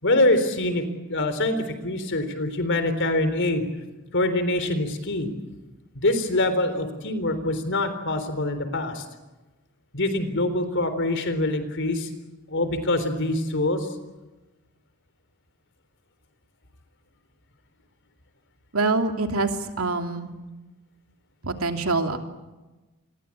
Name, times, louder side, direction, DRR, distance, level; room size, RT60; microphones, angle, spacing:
voice 1, 0.0-3.7 4.1-5.3 5.9-9.0 9.9-12.1 12.5-13.9, left 2 dB, 55° left, 10 dB, 3.9 m, -24 dB
voice 2, 18.7-19.5 19.8-20.3 21.4-22.2, right 3 dB, 70° right, 5 dB, 2.8 m, -25 dB
28.5 x 23.0 x 8.7 m, 1.1 s
head